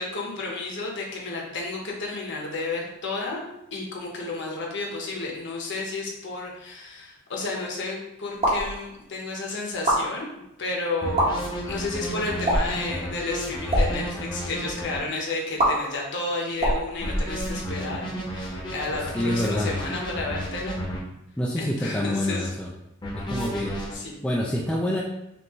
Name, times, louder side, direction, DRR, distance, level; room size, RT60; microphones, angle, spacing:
voice 1, 0.0-3.4 3.7-10.3 10.6-20.8 21.6-22.5 23.9-24.1, left 3 dB, 55° left, -1 dB, 1.0 m, -32 dB
sound 1, 8.3-8.7 9.7-10.0 11.0-11.3 12.4-12.8 13.6-13.9 15.6-15.7 16.5-17.7, right 1 dB, 30° right, 1.0 m, -23 dB
sound 2, 11.0-15.0 17.0-21.0 23.0-23.9, equal, 20° left, 0.8 m, -32 dB
voice 2, 19.1-19.7 21.4-22.7 23.1-23.8 24.2-25.0, left 1 dB, 5° left, -3 dB, 0.3 m, -26 dB
5.2 x 2.6 x 3.0 m, 0.86 s
head